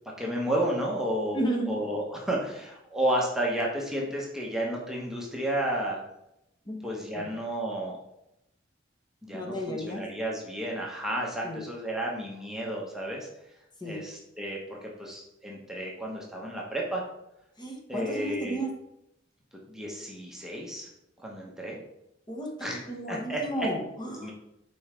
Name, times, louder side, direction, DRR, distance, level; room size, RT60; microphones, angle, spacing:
voice 1, 0.2-1.4 1.6-6.0 6.8-8.0 9.2-13.3 13.8-17.0 17.9-18.6 19.7-20.9 21.2-21.8 22.6-22.8 23.1-23.7 24.1-24.3, right 1 dB, 5° right, -3 dB, 1.0 m, -32 dB
voice 2, 1.3-1.7 6.7-6.8 7.2-7.3 9.3-10.0 11.4-11.6 13.8-14.0 17.6-18.8 22.3-24.3, right 1 dB, 25° left, 0 dB, 1.1 m, -33 dB
5.5 x 4.3 x 5.0 m, 0.83 s
head